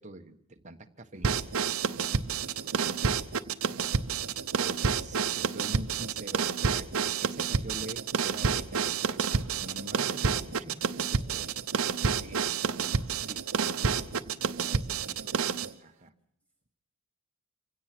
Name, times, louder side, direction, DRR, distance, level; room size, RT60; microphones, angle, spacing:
voice 1, 0.0-1.5 1.8-2.3 2.6-3.2 4.6-9.3 9.6-10.8 11.1-11.6 12.1-13.5 13.7-16.1, right 1 dB, 35° right, 5 dB, 1.3 m, -46 dB
sound 1, 1.2-15.7, right 5 dB, 80° right, 0.8 m, -29 dB
voice 2, 10.3-12.5 13.7-15.1, left 2 dB, 5° left, 0 dB, 6.7 m, -58 dB
25.5 x 17.0 x 6.1 m, 0.75 s
head